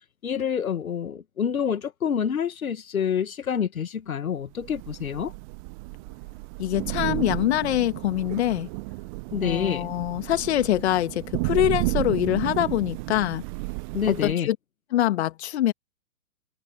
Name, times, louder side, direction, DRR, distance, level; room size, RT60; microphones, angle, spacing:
voice 1, 0.2-5.3 9.3-9.8 13.9-14.5, left 8 dB, 75° left, 1.4 m, -27 dB
Thunder / Rain, 4.6-14.3, right 27 dB, 25° right, 0.8 m, -32 dB
voice 2, 6.6-8.7 9.4-13.4 14.1-14.6 14.9-15.7, left 13 dB, 50° left, 2.1 m, -24 dB
figure-of-eight pair, 125°, 42 cm